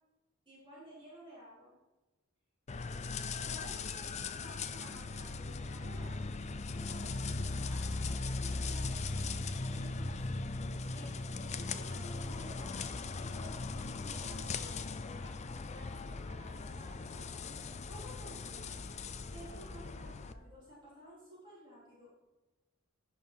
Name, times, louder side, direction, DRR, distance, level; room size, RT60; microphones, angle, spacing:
voice 1, 0.5-1.7 3.4-9.2 9.6-10.5 10.9-18.8 19.3-22.1, equal, 25° right, -9 dB, 4.0 m, -54 dB
sound 1, 2.7-20.3, left 3 dB, 35° left, 0.5 m, -39 dB
16.0 x 5.6 x 4.5 m, 1.1 s
head